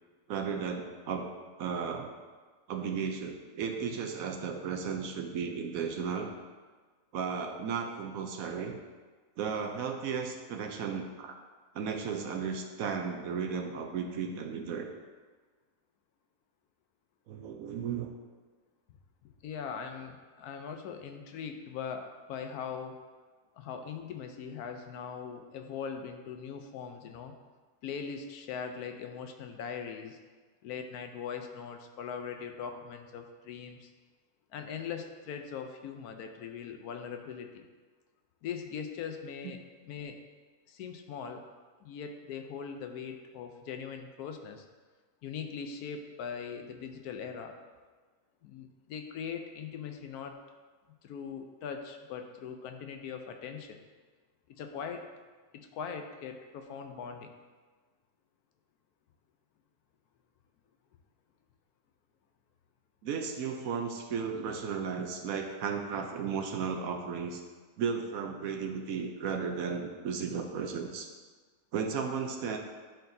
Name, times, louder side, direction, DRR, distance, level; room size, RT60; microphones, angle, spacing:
voice 1, 0.3-1.3 1.6-2.2 2.7-6.3 7.1-8.8 9.4-11.4 11.7-14.9 17.3-18.1 39.4-39.5 63.0-67.4 67.8-71.1 71.7-72.6, right 6 dB, 70° right, 4 dB, 1.0 m, -34 dB
voice 2, 19.4-23.0 23.5-27.3 27.8-30.2 30.6-33.9 34.5-37.7 38.4-40.2 40.7-41.4 41.8-44.6 45.2-47.6 48.4-50.4 51.0-53.8 54.6-55.1 55.5-57.3, left 6 dB, 80° left, 6 dB, 1.1 m, -41 dB
10.5 x 4.4 x 2.7 m, 1.4 s
omnidirectional pair, 1.7 m